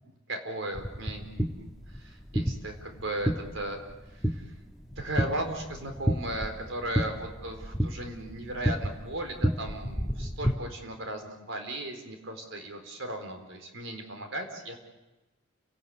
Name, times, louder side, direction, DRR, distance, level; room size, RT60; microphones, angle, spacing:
voice 1, 0.3-3.8 4.1-4.6 5.0-14.8, right 1 dB, 70° right, 5 dB, 4.2 m, -36 dB
sound 1, 0.7-10.5, equal, ahead, 1.3 m, -32 dB
30.0 x 17.5 x 8.3 m, 1.1 s
head